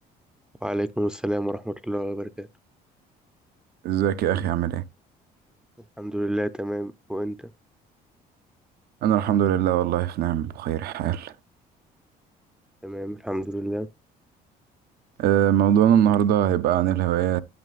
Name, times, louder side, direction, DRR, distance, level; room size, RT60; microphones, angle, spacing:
voice 1, 0.6-2.5 6.0-7.5 12.8-13.9, right 1 dB, 5° right, 0.4 m, -29 dB
voice 2, 3.8-4.8 9.0-11.3 15.2-17.4, right 10 dB, 70° right, 0.6 m, -21 dB
9.5 x 8.5 x 2.3 m
cardioid pair, 110°, 17 cm